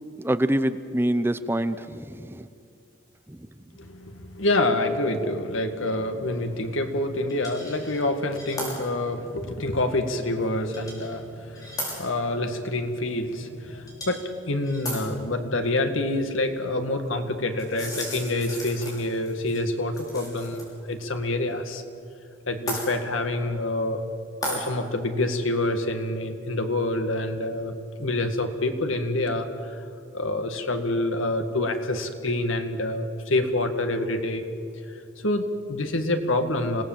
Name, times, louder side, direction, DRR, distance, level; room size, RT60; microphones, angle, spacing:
voice 1, 0.2-2.5 3.3-3.4, right 1 dB, 10° right, 11 dB, 0.6 m, -25 dB
voice 2, 3.8-14.2 14.5-21.8 22.5-24.0 24.4-29.8 30.1-34.5 35.2-36.8, left 2 dB, 90° left, 6 dB, 2.0 m, -27 dB
sound 1, 7.3-8.0 8.4-8.7 9.3-9.4 10.7-11.1 11.6-12.0 13.9-14.3 14.6-15.0 17.6-20.6 20.9-21.0 22.7-22.9 24.4-24.6, equal, 20° left, 5.9 m, -35 dB
26.5 x 18.0 x 7.5 m, 2.6 s
head